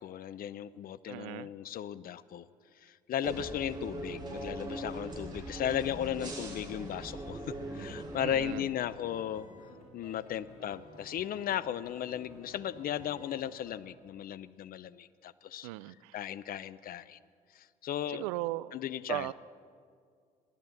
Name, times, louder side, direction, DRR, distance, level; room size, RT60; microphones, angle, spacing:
voice 1, 0.0-2.5 2.8-9.5 9.9-15.7 16.1-17.2 17.5-18.2 18.7-19.3, left 10 dB, 50° left, 17 dB, 0.6 m, -36 dB
voice 2, 1.1-1.5 8.2-8.7 15.6-16.2 18.1-18.7 19.1-19.3, right 18 dB, 75° right, 19 dB, 0.4 m, -37 dB
sound 1, 3.2-8.6, right 1 dB, 25° right, 5.4 m, -40 dB
sound 2, 8.4-13.7, left 2 dB, 90° left, 2.0 m, -53 dB
16.0 x 12.5 x 7.2 m, 2.2 s
hypercardioid pair, 50°, 19 cm